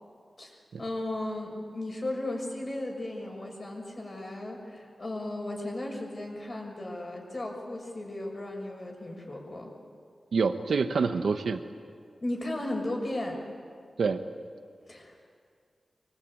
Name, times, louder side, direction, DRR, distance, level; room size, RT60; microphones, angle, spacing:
voice 1, 0.4-9.7 12.2-13.4 14.9-15.2, left 1 dB, 40° left, 1 dB, 6.4 m, -35 dB
voice 2, 10.3-11.6 14.0-14.2, right 5 dB, 85° right, 7 dB, 1.1 m, -26 dB
24.5 x 22.5 x 8.9 m, 2.2 s
wide cardioid pair, 85°, 0 cm